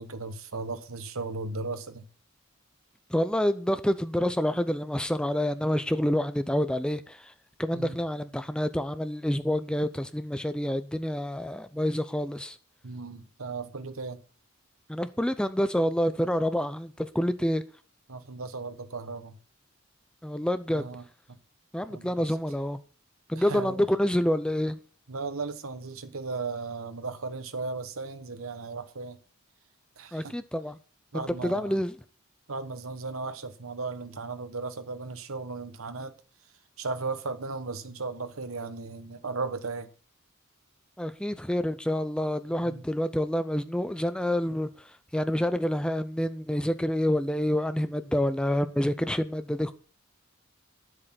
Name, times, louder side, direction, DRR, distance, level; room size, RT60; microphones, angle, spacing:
voice 1, 0.0-2.1 7.7-8.0 12.8-14.2 18.1-19.4 20.7-21.0 21.9-22.1 23.3-23.8 25.1-29.2 30.0-30.4 31.1-31.7 32.5-36.1 36.8-39.9 42.6-42.8, right 3 dB, 85° right, 1.2 m, -36 dB
voice 2, 3.1-7.3 7.6-12.6 14.9-17.6 20.2-20.9 21.7-22.8 23.3-24.8 30.1-30.8 31.1-31.9 41.0-49.7, equal, 5° left, 0.5 m, -28 dB
10.5 x 7.8 x 5.8 m
head